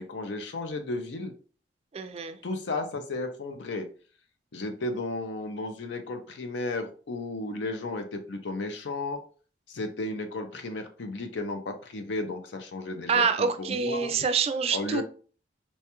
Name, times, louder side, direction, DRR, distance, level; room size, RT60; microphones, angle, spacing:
voice 1, 0.0-1.3 2.4-3.9 4.5-9.2 9.7-14.1 14.7-15.0, left 2 dB, 70° left, 6 dB, 0.5 m, -34 dB
voice 2, 1.9-2.4 13.1-15.0, right 5 dB, 35° right, 9 dB, 0.3 m, -26 dB
4.2 x 2.3 x 2.8 m, 0.40 s
head